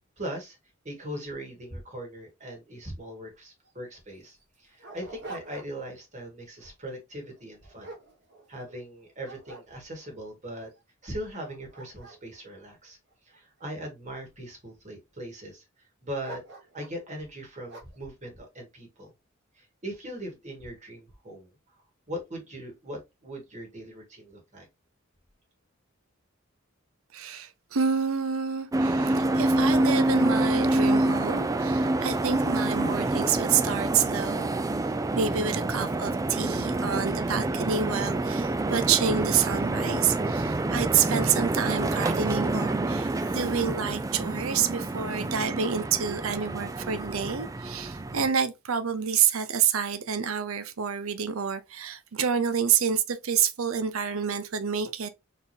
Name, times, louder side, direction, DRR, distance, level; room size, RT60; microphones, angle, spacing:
voice 1, 0.2-0.6 0.8-7.9 8.5-10.7 11.0-13.0 13.3-16.4 16.7-19.1 19.6-24.7, right 1 dB, 35° right, 1.8 m, -40 dB
Dog, 3.6-3.7 4.3-6.0 6.4-6.7 7.3-8.8 9.2-10.1 10.7-10.8 11.3-13.6 14.3-14.9 16.2-17.0 17.7-18.1, right 2 dB, 55° right, 1.7 m, -46 dB
voice 2, 27.1-34.5 35.1-55.1, right 7 dB, 80° right, 0.6 m, -28 dB
sound 1, 28.7-48.3, right 2 dB, 15° right, 0.3 m, -27 dB
4.2 x 3.5 x 2.7 m
head